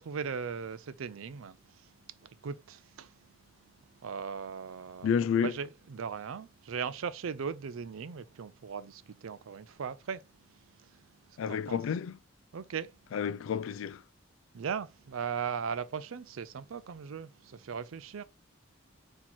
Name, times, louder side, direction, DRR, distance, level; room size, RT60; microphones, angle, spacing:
voice 1, 0.0-1.9 2.2-3.1 4.0-5.1 5.4-10.3 10.8-10.9 11.5-11.8 12.5-12.9 14.5-18.2, right 6 dB, 85° right, 0.4 m, -38 dB
voice 2, 5.0-5.5 11.4-12.2 13.1-14.0, left 7 dB, 75° left, 0.3 m, -30 dB
4.3 x 2.9 x 4.0 m
head